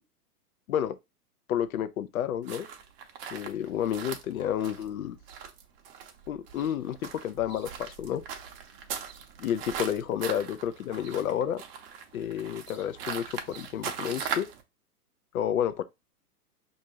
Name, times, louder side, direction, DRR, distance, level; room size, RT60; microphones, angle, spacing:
voice 1, 1.5-2.7 3.3-5.2 6.3-8.2 9.4-11.6 12.1-14.5 15.3-15.8, left 10 dB, 65° left, 0.6 m, -30 dB
sound 1, 2.5-14.6, right 7 dB, 40° right, 0.6 m, -40 dB
5.0 x 2.6 x 2.7 m
figure-of-eight pair, 115°, 47 cm